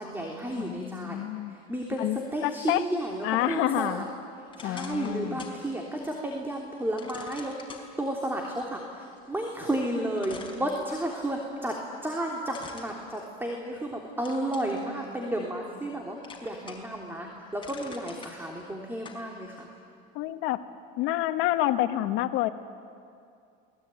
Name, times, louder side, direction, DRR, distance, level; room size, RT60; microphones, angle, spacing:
voice 1, 0.0-1.2 1.7-4.1 4.6-7.6 8.0-19.7, right 1 dB, 10° right, 0 dB, 3.2 m, -32 dB
voice 2, 0.6-1.5 2.0-2.8 3.2-4.0 4.6-5.6 20.1-20.6 21.0-22.5, left 14 dB, 75° left, 9 dB, 1.3 m, -28 dB
sound 1, 4.5-5.6 6.0-6.1 7.0-7.9 9.6-9.7 10.2-11.3 12.5-13.8 14.2-14.8 15.3-15.9 16.2-17.0 17.3-18.3 19.0-19.2, left 4 dB, 25° left, 5.0 m, -46 dB
28.0 x 20.5 x 9.3 m, 2.4 s
supercardioid pair, 110°, 21 cm